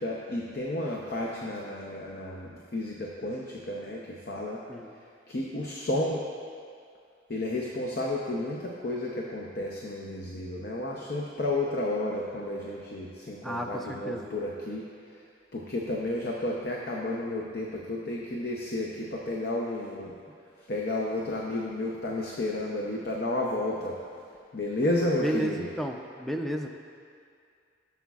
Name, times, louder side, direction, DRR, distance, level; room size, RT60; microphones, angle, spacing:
voice 1, 0.0-4.6 5.3-6.2 7.3-15.2 15.5-20.1 20.7-24.0 24.5-25.7, left 1 dB, 55° left, -2 dB, 0.7 m, -32 dB
voice 2, 13.4-14.3 25.2-26.7, equal, ahead, 2 dB, 0.5 m, -32 dB
15.5 x 7.1 x 2.4 m, 2.3 s
head